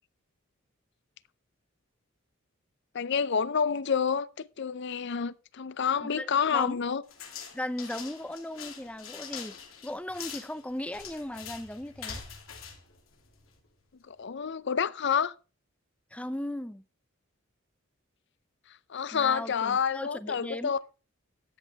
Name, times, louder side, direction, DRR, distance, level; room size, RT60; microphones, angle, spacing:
voice 1, 2.9-7.0 14.1-15.3 18.9-20.8, left 6 dB, 60° left, 0.6 m, -28 dB
voice 2, 6.0-6.8 7.5-9.6 9.8-12.2 16.1-16.8 19.1-20.7, left 1 dB, 5° left, 0.6 m, -37 dB
sound 1, 7.1-13.7, left 6 dB, 80° left, 2.8 m, -44 dB
13.0 x 8.4 x 3.4 m
head